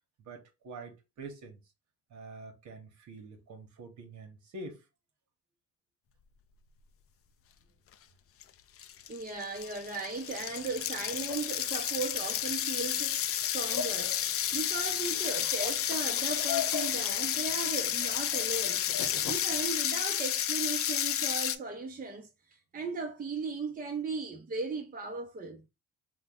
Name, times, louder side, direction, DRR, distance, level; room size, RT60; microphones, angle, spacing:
voice 1, 0.3-1.6 2.1-4.8, right 2 dB, 70° right, 1.1 m, -46 dB
sound 1, 8.4-8.5 8.8-21.6, left 10 dB, 50° left, 0.4 m, -31 dB
voice 2, 9.1-14.2 14.5-18.8 19.2-25.6, right 4 dB, 30° right, 0.8 m, -37 dB
sound 2, 10.3-19.6, left 7 dB, 70° left, 0.9 m, -42 dB
3.6 x 2.2 x 3.6 m
cardioid pair, 90°, 30 cm